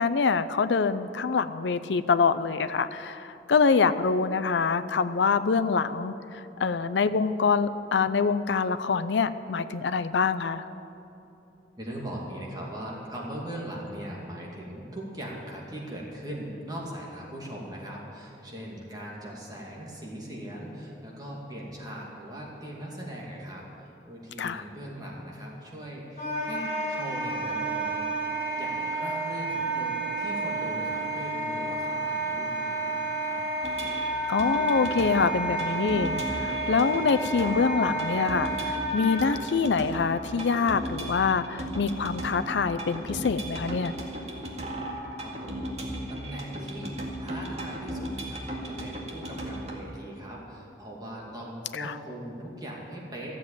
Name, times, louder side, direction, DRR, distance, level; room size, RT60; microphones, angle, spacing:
voice 1, 0.0-6.1 6.6-10.6 24.4-24.6 34.3-44.0 51.8-51.9, left 5 dB, 80° left, 12 dB, 0.5 m, -25 dB
voice 2, 11.8-28.1 28.6-33.4 45.2-45.7 46.1-53.4, right 1 dB, 25° right, -3 dB, 2.3 m, -40 dB
Wind instrument woodwind instrument, 26.2-39.2, right 2 dB, 40° left, 4.0 m, -30 dB
sound 1, 33.6-49.8, right 1 dB, 40° right, 2.0 m, -36 dB
14.5 x 7.7 x 8.9 m, 2.9 s
head